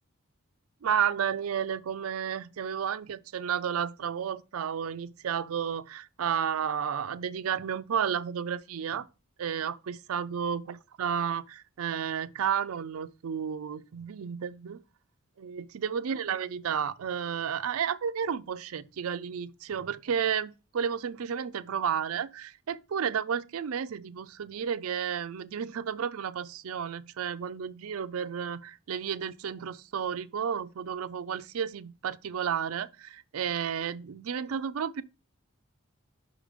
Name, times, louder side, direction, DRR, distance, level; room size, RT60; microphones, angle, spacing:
voice 1, 0.8-9.1 9.4-14.8 15.4-35.0, right 7 dB, 85° right, 0.4 m, -32 dB
5.7 x 5.0 x 5.1 m
head